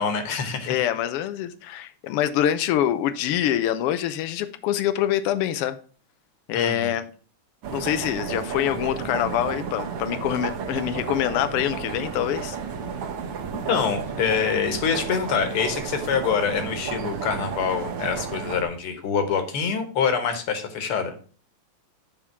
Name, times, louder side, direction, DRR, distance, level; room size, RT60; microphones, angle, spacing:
voice 1, 0.0-0.7 6.5-6.9 13.7-21.2, left 6 dB, 55° left, 8 dB, 1.9 m, -25 dB
voice 2, 0.7-5.8 6.5-7.1 7.7-12.6, left 11 dB, 90° left, 10 dB, 1.3 m, -25 dB
sound 1, 7.6-18.6, right 6 dB, 60° right, 1.8 m, -32 dB
11.0 x 3.7 x 5.9 m, 0.40 s
omnidirectional pair, 3.3 m